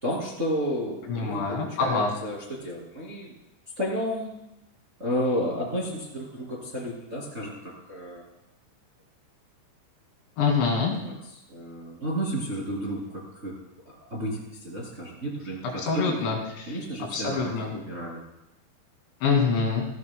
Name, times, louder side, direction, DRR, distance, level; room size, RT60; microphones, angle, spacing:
voice 1, 0.0-3.4 3.8-4.3 5.0-8.2 11.0-11.2 11.5-13.6 13.8-16.4 16.7-18.2, equal, 25° right, -4 dB, 1.8 m, -32 dB
voice 2, 1.1-2.1 10.4-10.9 15.8-16.8 17.1-17.7 19.2-19.9, left 5 dB, 75° left, 0 dB, 4.5 m, -25 dB
16.5 x 16.0 x 2.2 m, 0.87 s
omnidirectional pair, 5.3 m